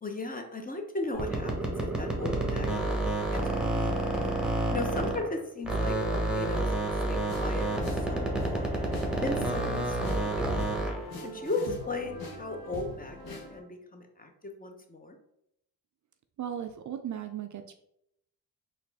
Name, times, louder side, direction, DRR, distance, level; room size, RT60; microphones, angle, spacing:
voice 1, 0.0-3.0 3.3-8.9 9.2-10.7 11.2-15.2, left 2 dB, 20° left, 4 dB, 0.8 m, -37 dB
sound 1, 1.1-5.4 5.6-11.1, right 2 dB, ahead, 1.1 m, -29 dB
sound 2, 7.3-13.6, left 2 dB, 65° left, 1.1 m, -42 dB
voice 2, 16.4-17.7, right 9 dB, 50° right, 7 dB, 0.4 m, -37 dB
4.0 x 2.5 x 3.4 m, 0.77 s
supercardioid pair, 60°, 39 cm